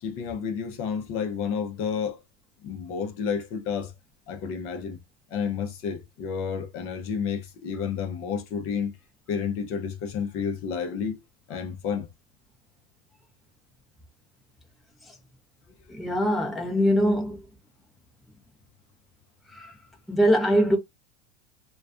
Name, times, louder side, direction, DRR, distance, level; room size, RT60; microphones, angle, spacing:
voice 1, 0.0-2.2 2.6-3.9 4.3-5.0 5.3-8.9 9.3-11.2 11.5-12.1, left 6 dB, 40° left, 0.6 m, -30 dB
voice 2, 15.9-17.4 19.5-19.7 20.1-20.8, equal, ahead, 0.6 m, -22 dB
2.3 x 2.3 x 2.4 m
supercardioid pair, 125°, 34 cm